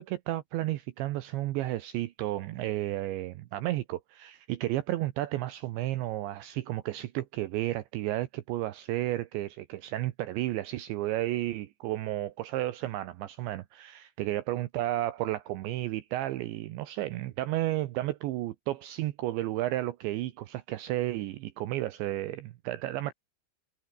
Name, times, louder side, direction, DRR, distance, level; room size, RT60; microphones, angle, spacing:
voice 1, 0.0-23.1, right 15 dB, 75° right, 3.1 m, -32 dB
omnidirectional pair, 5.7 m